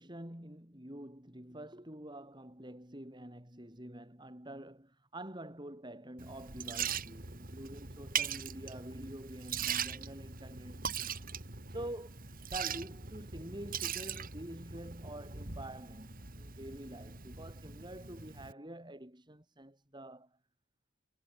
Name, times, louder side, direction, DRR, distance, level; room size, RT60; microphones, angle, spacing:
voice 1, 0.0-11.1 11.7-12.2 12.5-20.3, right 1 dB, 20° right, 3.6 m, -47 dB
Liquid, 6.2-18.5, right 7 dB, 40° right, 2.6 m, -41 dB
head